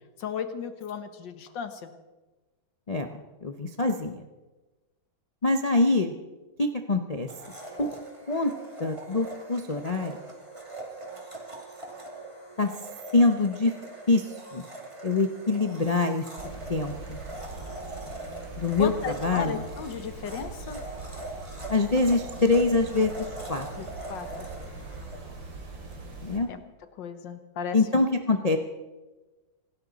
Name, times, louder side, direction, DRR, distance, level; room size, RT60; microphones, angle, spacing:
voice 1, 0.2-1.9 18.8-20.8 23.8-24.5 26.5-26.6 27.0-27.8, left 7 dB, 70° left, 9 dB, 1.9 m, -35 dB
voice 2, 3.4-4.2 5.4-6.1 6.6-7.3 7.8-8.5 8.8-10.2 12.6-12.7 13.1-13.7 14.1-14.6 15.0-16.2 16.7-17.2 18.6-19.7 21.7-23.7 26.2-26.5 27.7-28.6, left 3 dB, 45° left, 5 dB, 0.5 m, -25 dB
Domestic sounds home sounds, 7.3-26.1, right 2 dB, 15° right, 2.4 m, -42 dB
sound 1, 16.4-26.4, right 3 dB, 70° right, 3.4 m, -41 dB
26.0 x 12.5 x 4.1 m, 1.2 s
omnidirectional pair, 2.1 m